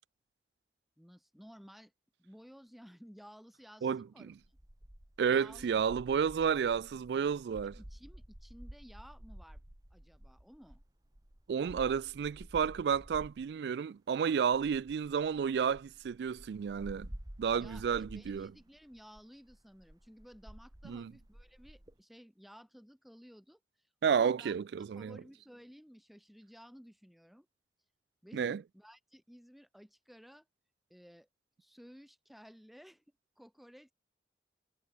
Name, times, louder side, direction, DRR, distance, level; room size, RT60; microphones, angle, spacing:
voice 1, 1.0-1.9 2.2-4.6 5.3-5.7 7.8-9.6 9.9-10.8 17.6-24.5 24.9-27.5 28.2-30.5 30.9-31.3 31.6-33.0 33.4-33.9, equal, ahead, 1.5 m, -55 dB
voice 2, 3.8-4.3 5.2-7.8 11.5-17.1 17.4-18.5 20.8-21.1 24.0-25.2 28.3-28.6, right 7 dB, 75° right, 0.3 m, -31 dB
sound 1, 4.4-13.6 14.4-22.0, equal, 20° right, 1.4 m, -52 dB
head